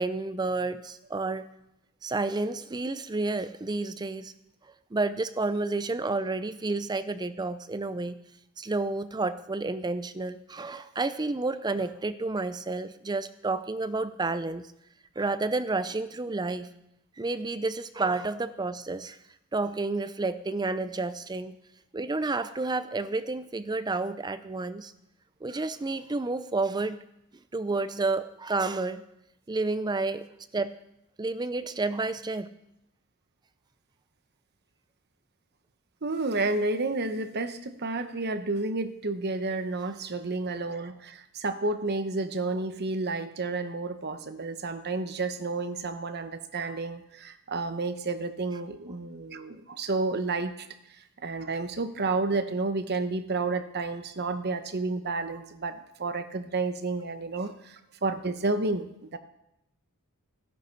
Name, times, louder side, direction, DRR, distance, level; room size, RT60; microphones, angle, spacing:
voice 1, 0.0-1.5 2.0-4.3 4.9-8.2 8.6-14.7 15.2-16.7 17.2-19.2 19.5-21.6 21.9-24.9 25.4-27.0 27.5-29.0 29.5-30.3 30.5-30.7 31.2-32.5, right 3 dB, 20° right, 12 dB, 0.5 m, -30 dB
voice 2, 36.0-50.7 51.2-59.2, right 3 dB, 45° right, 9 dB, 1.0 m, -31 dB
15.0 x 11.0 x 4.6 m, 0.84 s
head